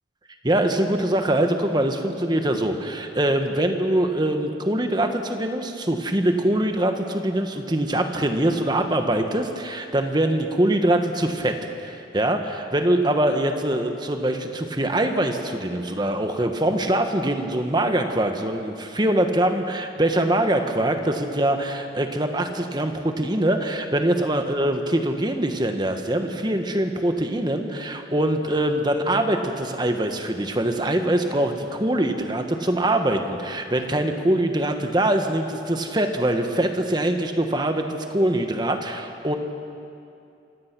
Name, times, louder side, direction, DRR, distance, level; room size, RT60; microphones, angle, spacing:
voice 1, 0.4-11.6 11.8-37.8 38.1-39.3, right 1 dB, 25° right, 5 dB, 1.3 m, -23 dB
27.5 x 16.5 x 6.1 m, 2.6 s
head